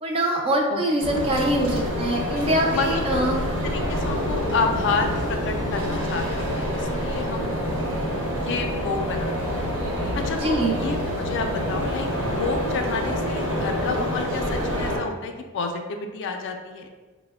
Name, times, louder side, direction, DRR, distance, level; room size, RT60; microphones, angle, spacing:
voice 1, 0.0-3.4 10.4-10.8, right 1 dB, 25° right, 0 dB, 0.3 m, -23 dB
sound 1, 1.0-15.0, equal, 60° right, 0.8 m, -27 dB
voice 2, 2.7-3.2 3.6-7.6 8.4-9.6 10.2-16.9, left 4 dB, 55° left, 4 dB, 0.4 m, -30 dB
4.8 x 2.0 x 2.2 m, 1.3 s
head